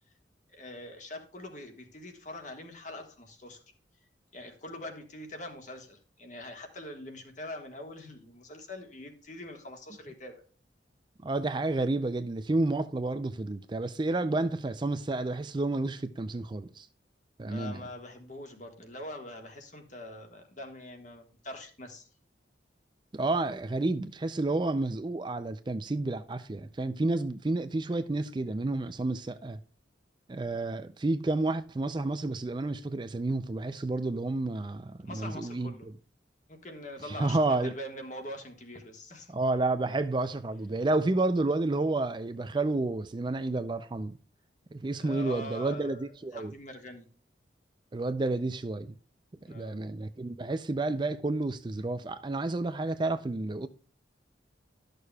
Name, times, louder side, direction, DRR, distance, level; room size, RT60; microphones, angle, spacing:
voice 1, 0.5-3.6 4.3-10.4 17.5-22.1 35.0-35.9 36.5-39.3 44.9-47.1 49.4-49.8, left 1 dB, 40° left, 1.5 m, -43 dB
voice 2, 11.2-16.9 17.4-17.8 23.1-29.6 30.3-35.9 37.1-37.7 39.3-44.2 44.7-46.5 47.9-49.0 49.5-53.7, right 2 dB, 25° right, 0.4 m, -30 dB
12.5 x 6.5 x 2.3 m
head